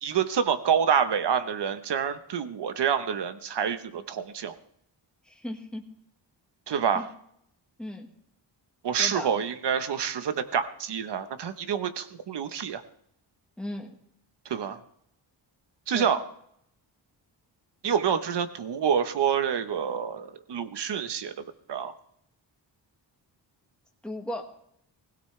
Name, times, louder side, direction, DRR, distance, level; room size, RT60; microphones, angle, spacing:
voice 1, 0.0-4.5 6.7-7.1 8.8-12.8 14.4-14.8 15.9-16.2 17.8-21.3 21.7-21.9, right 7 dB, 65° right, 10 dB, 1.1 m, -27 dB
voice 2, 5.3-5.9 6.9-7.1 7.8-8.1 9.0-9.3 13.6-13.9 15.9-16.1 24.0-24.5, left 1 dB, ahead, 1 dB, 1.6 m, -36 dB
20.5 x 16.5 x 3.3 m, 0.71 s
wide cardioid pair, 165°, 44 cm